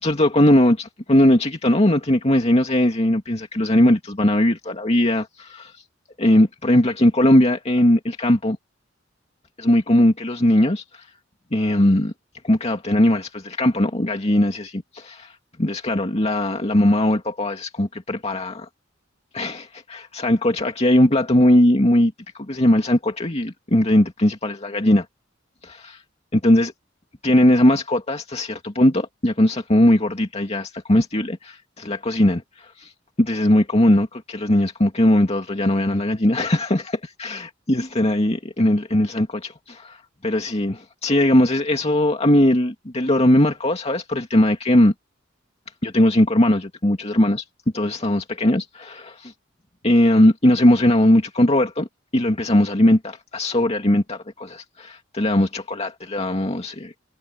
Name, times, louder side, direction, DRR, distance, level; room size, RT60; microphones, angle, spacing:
voice 1, 0.0-5.7 6.2-8.6 9.6-11.1 11.5-12.1 12.4-18.7 19.3-25.1 25.6-26.0 26.3-26.7 27.2-32.9 33.2-44.9 45.8-47.4 47.7-49.3 49.8-51.9 52.1-56.9, left 1 dB, 35° left, 2.4 m, -19 dB
head